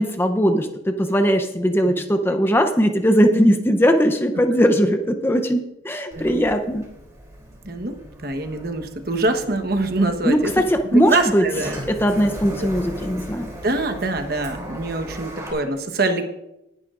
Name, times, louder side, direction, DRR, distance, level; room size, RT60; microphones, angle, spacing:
voice 1, 0.0-6.8 10.2-11.5 11.9-13.5, equal, 10° left, 7 dB, 0.7 m, -19 dB
Sliding door, 6.1-15.5, equal, 15° right, 3.2 m, -37 dB
voice 2, 6.1-6.4 7.6-10.6 10.9-11.8 12.6-12.8 13.6-16.3, right 2 dB, 55° right, 6 dB, 1.2 m, -24 dB
19.5 x 10.5 x 2.5 m, 0.89 s
head